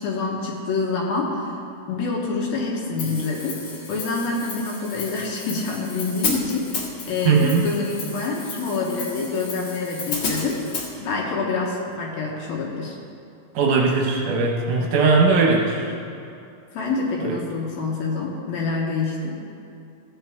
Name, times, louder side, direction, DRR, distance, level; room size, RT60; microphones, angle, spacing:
voice 1, 0.0-1.6 1.9-13.0 16.7-19.4, left 4 dB, 75° left, -3 dB, 2.8 m, -27 dB
Hi-hat, 3.0-10.9, left 3 dB, 50° left, 2.3 m, -32 dB
voice 2, 7.3-7.6 13.6-15.9 17.2-17.4, right 4 dB, 70° right, 0 dB, 2.0 m, -19 dB
15.0 x 9.5 x 3.5 m, 2.6 s
omnidirectional pair, 4.5 m